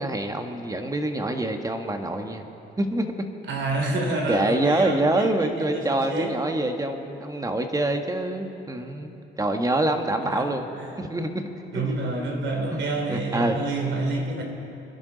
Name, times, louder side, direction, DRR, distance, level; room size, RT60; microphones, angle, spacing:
voice 1, 0.0-2.4 2.8-3.1 4.3-10.7 11.0-11.8 12.7-12.8 13.1-13.6, right 1 dB, 15° right, 5 dB, 1.4 m, -26 dB
voice 2, 3.5-6.4 10.2-10.5 10.8-10.9 11.7-14.4, right 2 dB, 70° right, 1 dB, 3.1 m, -28 dB
27.0 x 11.0 x 4.0 m, 3.0 s
cardioid pair, 90°, 20 cm